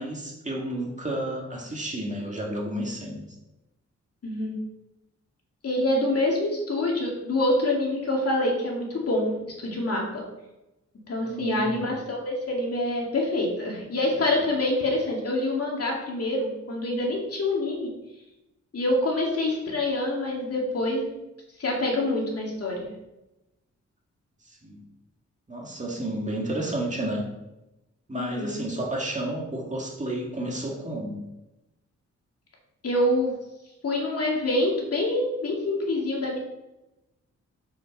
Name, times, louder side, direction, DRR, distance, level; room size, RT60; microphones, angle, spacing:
voice 1, 0.0-3.2 11.2-11.9 24.5-24.8 25.5-27.2 28.1-31.2, right 1 dB, 25° right, -1 dB, 2.0 m, -31 dB
voice 2, 4.2-4.6 5.6-9.3 9.6-10.2 11.1-17.9 18.7-21.1 21.6-22.8 28.1-28.6 32.8-33.3 33.8-36.4, left 1 dB, 55° left, -2 dB, 2.4 m, -26 dB
7.4 x 6.5 x 4.3 m, 0.94 s
wide cardioid pair, 105°, 30 cm